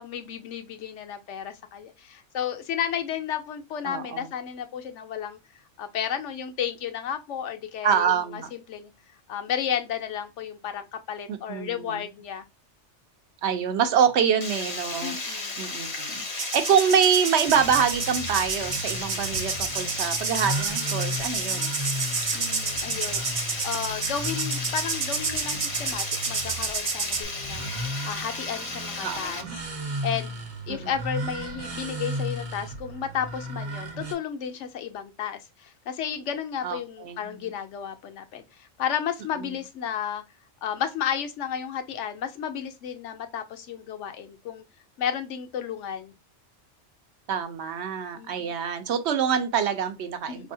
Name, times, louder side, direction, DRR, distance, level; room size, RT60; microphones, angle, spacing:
voice 1, 0.0-5.4 5.8-8.9 9.3-12.4 15.0-15.6 22.3-23.2 23.6-27.7 28.0-29.4 30.0-40.2 40.6-44.6 45.0-46.1 48.1-48.6 50.3-50.5, left 8 dB, 80° left, 1.0 m, -33 dB
voice 2, 3.8-4.3 7.8-8.5 11.3-12.0 13.4-21.7 29.0-29.6 30.7-30.9 36.6-37.5 47.3-50.5, right 7 dB, 70° right, 0.9 m, -26 dB
Water, 14.4-29.4, left 3 dB, 35° left, 0.6 m, -34 dB
sound 1, 16.3-27.2, right 5 dB, 50° right, 0.4 m, -30 dB
sound 2, 17.5-34.1, right 1 dB, 35° right, 0.8 m, -35 dB
4.4 x 2.7 x 2.6 m
omnidirectional pair, 1.2 m